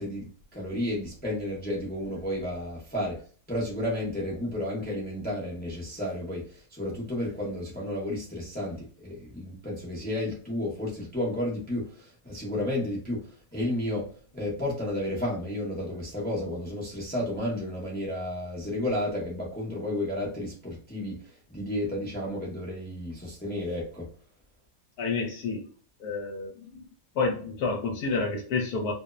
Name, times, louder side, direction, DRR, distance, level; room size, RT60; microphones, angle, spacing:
voice 1, 0.0-3.2 3.5-14.1 14.3-24.1, left 1 dB, 10° left, 0.4 m, -32 dB
voice 2, 25.0-25.7 26.0-26.8 27.1-28.9, left 4 dB, 75° left, 1.1 m, -29 dB
2.7 x 2.0 x 2.3 m
omnidirectional pair, 1.7 m